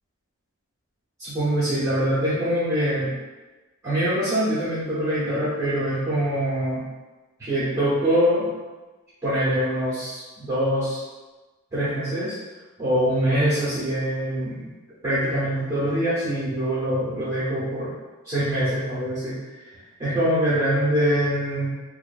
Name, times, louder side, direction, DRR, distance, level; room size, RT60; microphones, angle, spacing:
voice 1, 1.2-3.1 3.8-6.8 7.4-8.5 9.2-11.0 11.7-12.4 12.8-14.6 15.0-17.9 18.2-19.3 20.0-21.7, equal, 15° right, -13 dB, 0.8 m, -24 dB
2.5 x 2.5 x 2.3 m, 1.2 s
head